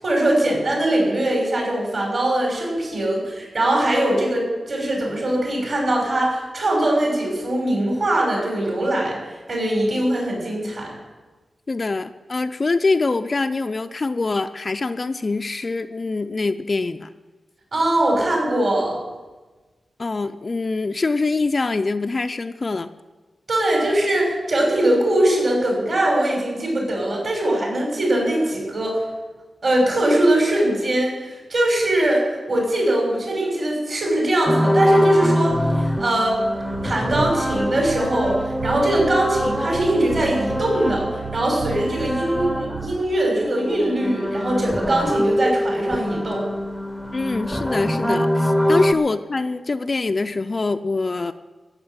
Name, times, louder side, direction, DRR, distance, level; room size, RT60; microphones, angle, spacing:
voice 1, 0.0-9.2 9.5-10.9 17.7-19.0 23.5-29.0 29.6-36.4 36.8-46.5, right 1 dB, 50° right, -1 dB, 6.1 m, -21 dB
voice 2, 11.7-17.1 20.0-22.9 47.1-51.3, left 3 dB, 35° left, 9 dB, 0.5 m, -24 dB
sound 1, 34.5-43.0 43.3-48.9, equal, 5° right, 0.8 m, -24 dB
sound 2, 36.7-43.0, right 6 dB, 75° right, 0.8 m, -33 dB
15.0 x 7.3 x 9.6 m, 1.3 s
wide cardioid pair, 145°, 0 cm